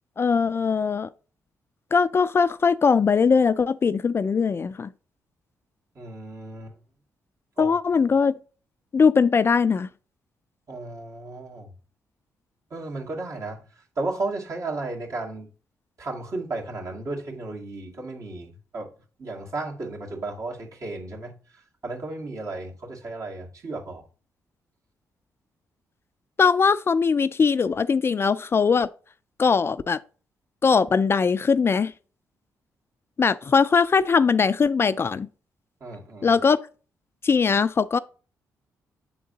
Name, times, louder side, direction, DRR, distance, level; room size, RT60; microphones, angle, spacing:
voice 1, 0.2-1.1 1.9-4.9 7.6-8.3 8.9-9.9 26.4-28.9 29.4-30.0 30.6-31.9 33.2-35.3 36.2-36.6 37.2-38.0, left 5 dB, 40° left, 0.3 m, -20 dB
voice 2, 6.0-6.8 7.6-7.7 10.7-11.7 12.7-15.5 16.0-18.9 19.2-24.1 35.8-36.4, right 2 dB, 55° right, 2.1 m, -34 dB
7.7 x 3.8 x 3.9 m
supercardioid pair, 60°, 6 cm